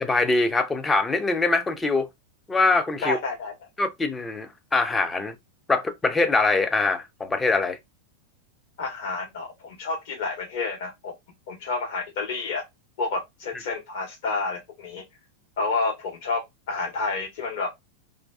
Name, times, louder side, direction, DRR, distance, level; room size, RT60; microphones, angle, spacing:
voice 1, 0.0-2.1 2.5-3.2 3.8-5.3 5.7-7.8, left 3 dB, 15° left, 0.4 m, -23 dB
voice 2, 3.0-3.5 8.8-11.1 11.5-12.6 13.0-15.0 15.6-16.4 16.7-17.7, left 3 dB, 55° left, 1.1 m, -29 dB
2.5 x 2.2 x 2.2 m
figure-of-eight pair, 90°, 0 cm